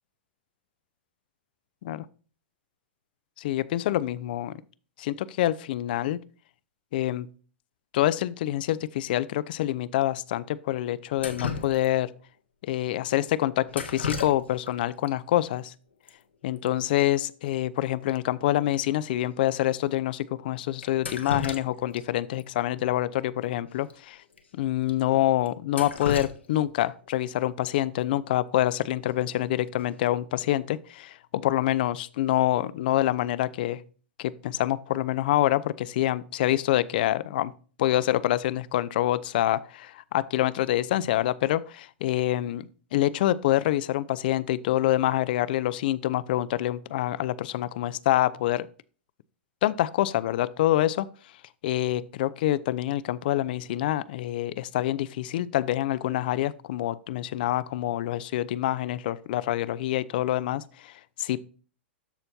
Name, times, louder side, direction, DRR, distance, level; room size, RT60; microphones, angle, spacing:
voice 1, 3.4-4.5 5.0-6.2 6.9-7.3 7.9-12.1 12.6-15.7 16.4-24.2 24.6-33.8 34.2-37.5 37.8-48.7 49.6-51.1 51.6-60.9 61.2-61.4, left 14 dB, 55° left, 0.5 m, -26 dB
Drip, 11.2-12.2 13.7-14.7 15.0-15.1 16.1-16.2 16.4-16.7 17.0-17.1 17.5-17.6 18.1-18.2 18.7-18.8 19.5-19.7 20.8-22.0 22.4-22.5 23.8-23.9 24.3-24.4 24.9-25.0 25.5-27.1 29.1-29.4 29.8-30.2, left 5 dB, 80° left, 1.2 m, -35 dB
13.0 x 4.4 x 2.8 m
figure-of-eight pair, 105°, 6 cm